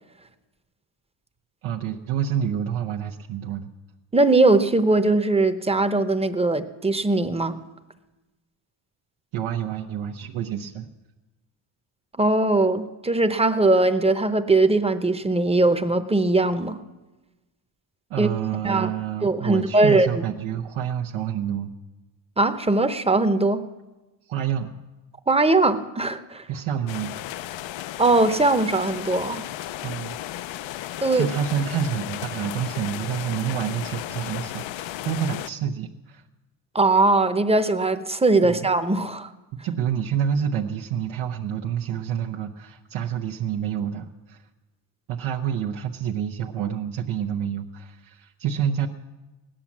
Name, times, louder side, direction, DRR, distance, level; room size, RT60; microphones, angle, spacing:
voice 1, 1.6-3.7 9.3-10.9 18.1-21.7 24.2-24.8 26.5-27.2 29.8-30.2 31.1-36.3 38.4-38.7 39.5-44.4 45.1-48.9, right 9 dB, 85° right, 0 dB, 1.0 m, -28 dB
voice 2, 4.1-7.6 12.2-16.8 18.2-18.3 18.6-18.9 19.2-20.1 22.4-23.6 25.3-26.4 28.0-29.5 31.0-31.3 36.7-39.3, right 2 dB, 15° right, 10 dB, 0.8 m, -20 dB
sound 1, 26.9-35.5, left 14 dB, 75° left, 0.5 m, -34 dB
17.0 x 10.0 x 7.3 m, 1.1 s
cardioid pair, 115°, 47 cm